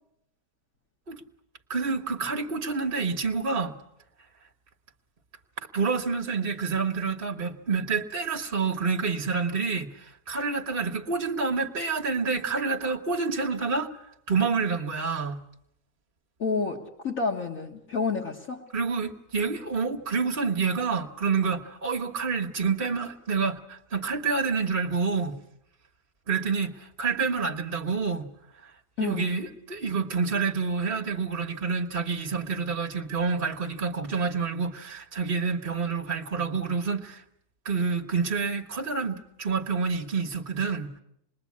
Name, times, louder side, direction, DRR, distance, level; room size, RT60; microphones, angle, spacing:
voice 1, 1.7-3.7 5.7-13.9 14.3-15.4 18.7-25.3 26.3-28.3 29.0-37.2 37.6-40.9, right 5 dB, 35° right, 1.3 m, -28 dB
voice 2, 16.4-18.7 29.0-29.3, left 5 dB, 55° left, 1.9 m, -29 dB
27.0 x 21.0 x 8.5 m
omnidirectional pair, 1.7 m